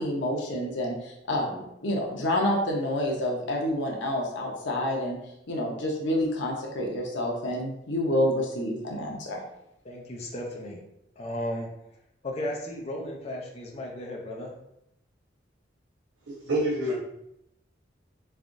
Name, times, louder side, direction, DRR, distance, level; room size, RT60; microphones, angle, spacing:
voice 1, 0.0-5.2 5.5-9.4, left 1 dB, 85° left, -1 dB, 0.7 m, -28 dB
voice 2, 9.8-10.8 11.2-11.7 12.2-14.5, left 1 dB, 35° left, -1 dB, 0.5 m, -35 dB
voice 3, 16.3-17.0, right 1 dB, 80° right, -7 dB, 0.8 m, -27 dB
3.4 x 3.3 x 2.5 m, 0.80 s
head